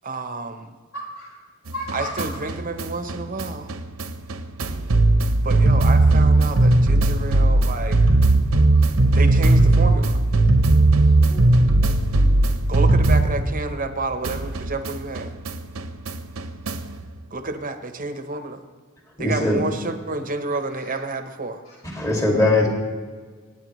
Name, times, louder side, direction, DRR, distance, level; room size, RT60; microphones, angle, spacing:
voice 1, 0.0-0.7 1.9-3.7 5.4-8.0 9.1-10.2 12.7-15.3 17.3-18.6 19.2-21.6, right 3 dB, 40° right, 8 dB, 0.9 m, -30 dB
voice 2, 0.9-1.4 1.7-2.3 7.7-8.2 8.7-8.9 11.0-11.6 20.5-21.0 21.6-21.8, equal, 70° left, -3 dB, 4.7 m, -37 dB
sound 1, 1.7-13.9 14.2-17.0, right 2 dB, 90° right, 0.9 m, -19 dB
voice 3, 19.2-19.6 21.8-22.7, left 2 dB, 15° left, -1 dB, 2.2 m, -20 dB
24.0 x 9.6 x 3.1 m, 1.5 s
head